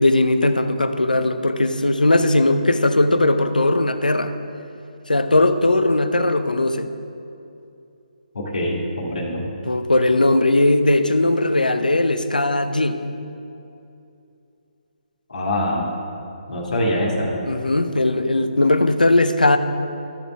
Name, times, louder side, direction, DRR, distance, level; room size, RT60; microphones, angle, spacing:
voice 1, 0.0-4.3 5.1-6.9 9.7-13.1 17.4-19.6, left 2 dB, 80° left, 10 dB, 0.6 m, -18 dB
voice 2, 8.3-9.4 15.3-15.8 16.5-17.3, left 1 dB, 65° left, -3 dB, 1.8 m, -24 dB
13.0 x 7.0 x 3.5 m, 2.7 s
figure-of-eight pair, 140°, 5 cm